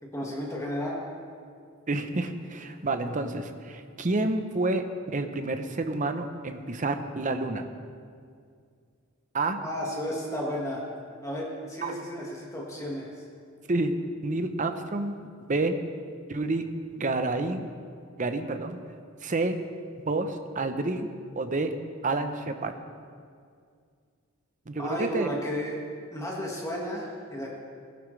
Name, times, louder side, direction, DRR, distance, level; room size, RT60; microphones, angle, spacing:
voice 1, 0.0-1.0 9.6-10.8 11.2-13.1 24.8-25.8 26.1-27.5, equal, 15° left, -3 dB, 1.7 m, -33 dB
voice 2, 1.9-7.7 9.3-9.6 11.8-11.9 13.7-13.9 14.2-15.1 15.5-15.8 16.3-16.7 17.0-17.7 18.2-18.8 19.2-19.6 20.1-21.1 21.4-21.7 22.0-22.7 24.7-25.3, right 2 dB, 35° right, 8 dB, 0.7 m, -29 dB
18.0 x 11.0 x 3.3 m, 2.2 s
head